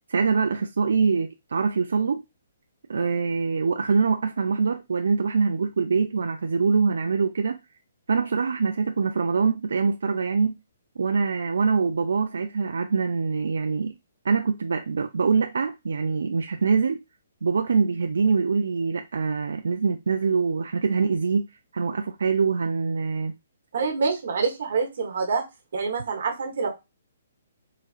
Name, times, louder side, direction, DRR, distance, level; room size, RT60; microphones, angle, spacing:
voice 1, 0.1-2.2 2.9-7.6 8.1-10.5 11.0-13.9 14.2-17.0 17.4-21.5 21.7-23.3, right 5 dB, 85° right, 0.3 m, -24 dB
voice 2, 23.7-25.4 25.7-26.7, right 4 dB, 65° right, 1.0 m, -26 dB
4.0 x 2.4 x 2.4 m
hypercardioid pair, 165°, 0 cm